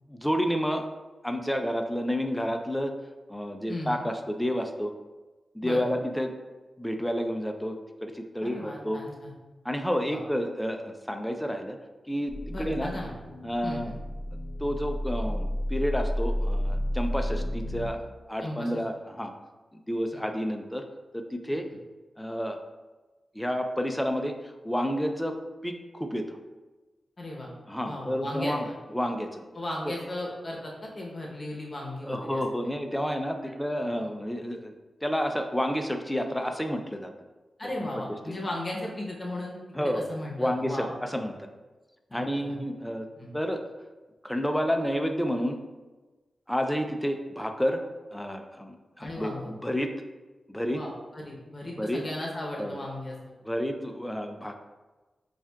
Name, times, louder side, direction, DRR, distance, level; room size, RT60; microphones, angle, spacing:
voice 1, 0.1-0.8 1.2-2.9 3.3-4.9 5.5-6.3 6.8-9.0 9.6-11.8 12.1-12.9 13.4-13.9 14.6-18.0 18.3-19.3 19.9-20.8 21.1-21.6 22.2-22.6 23.3-25.3 25.6-26.4 27.7-28.7 28.9-29.4 29.9-30.0 32.0-34.7 35.0-37.1 37.8-37.9 38.3-38.4 39.7-40.0 40.4-41.5 42.1-43.1 43.3-43.6 44.2-45.6 46.5-47.8 48.1-49.9 50.5-50.8 51.8-52.0 52.6-52.8 53.5-54.6, equal, 5° left, 5 dB, 0.4 m, -30 dB
voice 2, 3.7-4.0 5.6-6.0 8.4-9.3 10.1-10.2 12.5-13.1 13.6-14.0 18.4-18.7 27.2-27.5 27.8-28.7 29.5-32.4 37.6-40.9 42.1-42.6 43.2-43.3 49.0-49.5 50.7-53.2, left 1 dB, 35° left, -2 dB, 0.8 m, -36 dB
sound 1, 12.3-17.9, equal, 15° right, 1.3 m, -31 dB
7.0 x 2.4 x 2.3 m, 1.2 s
wide cardioid pair, 80°, 0 cm